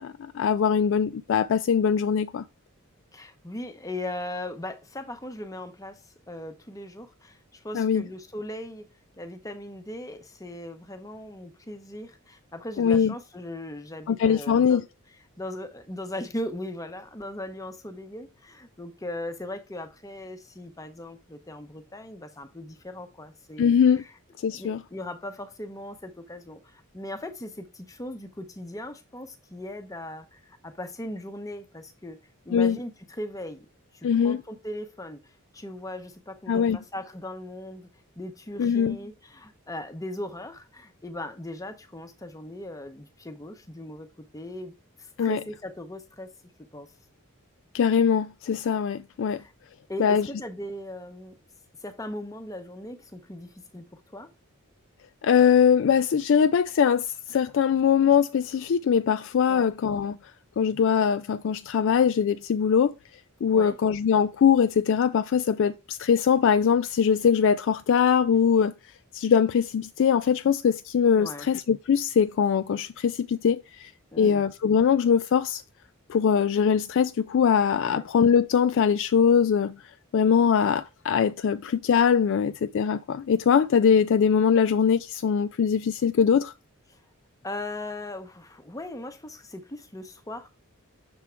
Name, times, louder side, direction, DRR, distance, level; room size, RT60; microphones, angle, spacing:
voice 1, 0.0-2.4 7.7-8.0 12.8-13.1 14.1-14.8 23.6-24.0 24.4-24.8 32.5-32.8 34.0-34.4 36.5-36.8 38.6-39.0 45.2-45.4 47.7-49.4 50.0-50.3 55.2-60.2 60.6-62.9 63.4-68.7 69.1-73.9 74.2-75.6 76.1-79.7 80.1-86.5, left 7 dB, 60° left, 0.3 m, -22 dB
voice 2, 3.1-6.0 6.3-8.9 9.2-14.8 15.4-24.1 24.5-32.2 32.4-33.7 33.9-35.2 35.5-37.9 38.2-46.3 46.7-46.9 49.4-49.5 49.9-51.4 51.8-54.3 59.5-59.7 63.5-63.8 71.1-71.5 74.1-74.4 77.9-78.1 86.9-87.0 87.4-90.5, left 1 dB, 15° left, 0.8 m, -38 dB
6.9 x 3.6 x 4.3 m
head